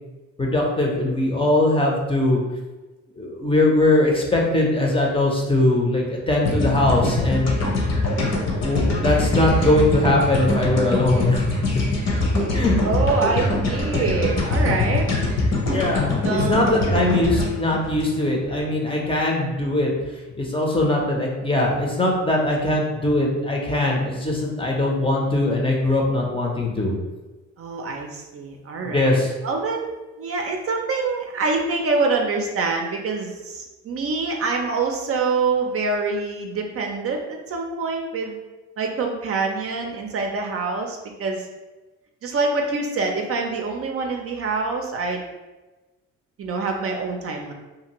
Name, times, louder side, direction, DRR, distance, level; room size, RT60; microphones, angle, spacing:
voice 1, 0.4-2.4 3.2-7.5 8.5-11.4 11.7-11.8 12.5-12.8 15.7-19.9 20.4-26.9 28.8-29.3, left 2 dB, 20° left, -1 dB, 0.6 m, -21 dB
sound 1, 6.4-18.7, left 2 dB, 55° left, 0.9 m, -23 dB
voice 2, 12.8-15.1 16.2-16.6 27.6-29.2 29.4-38.4 38.8-41.5 42.2-45.3 46.4-47.5, right 4 dB, 50° right, 2 dB, 0.5 m, -25 dB
2.7 x 2.5 x 2.9 m, 1.1 s
cardioid pair, 90°, 30 cm